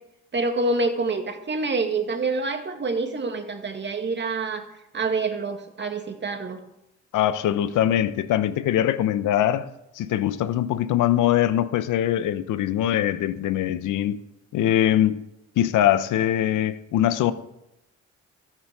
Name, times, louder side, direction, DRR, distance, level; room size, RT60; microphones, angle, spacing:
voice 1, 0.3-4.6 4.9-6.6, right 3 dB, 35° right, 2.2 m, -26 dB
voice 2, 7.1-9.7 10.0-14.2 14.5-15.2 15.6-17.3, left 11 dB, 85° left, 1.0 m, -22 dB
14.0 x 9.6 x 6.9 m
cardioid pair, 90°, 30 cm